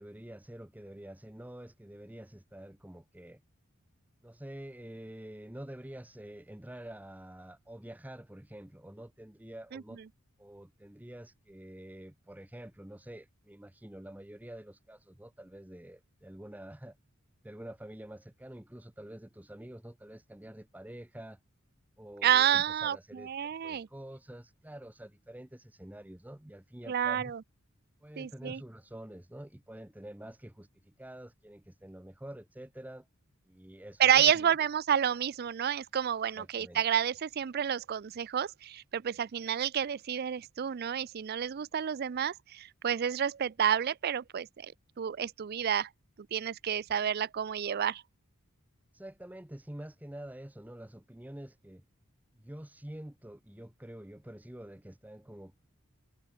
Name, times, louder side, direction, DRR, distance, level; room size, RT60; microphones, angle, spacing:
voice 1, 0.0-3.4 4.2-10.0 10.4-17.0 17.4-21.4 22.0-23.3 23.6-27.3 28.0-33.1 33.5-34.5 36.4-36.8 48.9-51.8 52.3-55.6, right 1 dB, 5° right, 0.6 m, -47 dB
voice 2, 22.2-23.9 26.9-27.4 28.2-28.6 34.0-44.7 45.0-45.9 46.3-48.0, right 9 dB, 45° right, 0.4 m, -29 dB
head